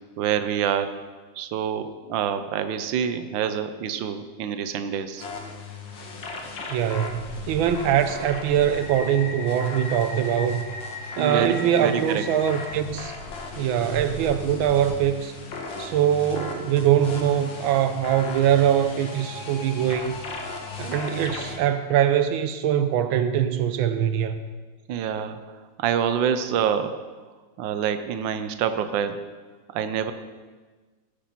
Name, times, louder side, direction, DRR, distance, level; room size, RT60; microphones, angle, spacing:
voice 1, 0.2-0.9 1.4-5.2 6.6-6.7 11.2-12.2 24.9-25.4 25.8-27.0 27.6-29.2 29.7-30.1, right 8 dB, 75° right, 9 dB, 1.5 m, -26 dB
sound 1, 5.2-21.6, left 3 dB, 70° left, 2.2 m, -36 dB
voice 2, 6.7-10.7 11.1-13.1 13.6-15.3 15.8-20.2 20.8-24.4, right 9 dB, 90° right, 9 dB, 1.5 m, -22 dB
17.0 x 7.0 x 5.9 m, 1.3 s
omnidirectional pair, 2.1 m